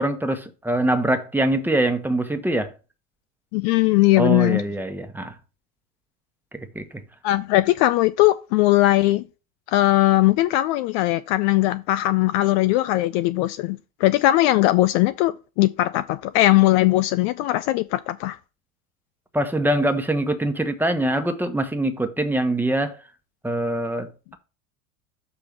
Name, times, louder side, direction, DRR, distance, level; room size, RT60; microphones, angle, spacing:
voice 1, 0.0-2.7 4.2-5.3 6.5-6.8 19.3-23.0 23.4-24.4, right 1 dB, 5° right, 1.1 m, -23 dB
voice 2, 3.5-4.6 7.2-9.2 9.7-18.4, left 17 dB, 55° left, 0.5 m, -19 dB
7.0 x 3.4 x 6.0 m
hypercardioid pair, 85°, 41 cm